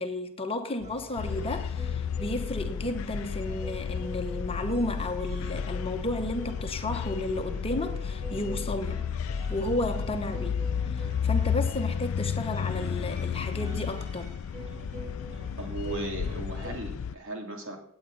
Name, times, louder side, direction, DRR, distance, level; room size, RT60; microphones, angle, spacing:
voice 1, 0.0-9.0 9.5-14.3, left 1 dB, 25° left, 1.1 m, -33 dB
sound 1, 0.8-16.7, equal, 30° right, 2.6 m, -46 dB
sound 2, 1.2-17.2, left 7 dB, 65° left, 0.4 m, -32 dB
voice 2, 15.6-17.8, right 2 dB, 60° right, 2.8 m, -36 dB
18.0 x 8.9 x 4.1 m
head